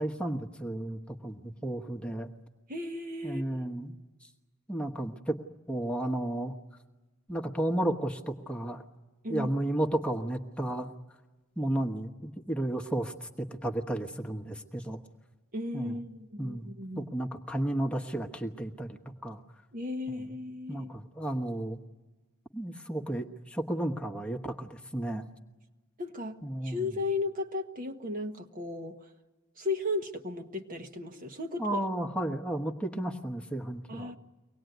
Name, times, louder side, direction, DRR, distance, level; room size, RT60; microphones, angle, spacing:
voice 1, 0.0-2.3 3.2-3.9 4.7-5.4 5.7-6.5 7.3-8.8 9.3-10.9 11.6-13.3 13.6-15.0 15.7-16.0 16.4-16.7 17.0-18.9 19.2-19.4 20.1-20.2 20.7-21.8 22.5-25.2 26.4-26.9 31.6-34.1, right 1 dB, 5° left, 2 dB, 1.2 m, -33 dB
voice 2, 2.7-3.4 9.2-9.5 15.5-17.1 19.7-20.9 26.0-26.4 26.6-29.0 29.6-31.8 33.9-34.2, left 2 dB, 40° right, 5 dB, 1.2 m, -35 dB
24.0 x 19.0 x 9.3 m, 1.2 s
head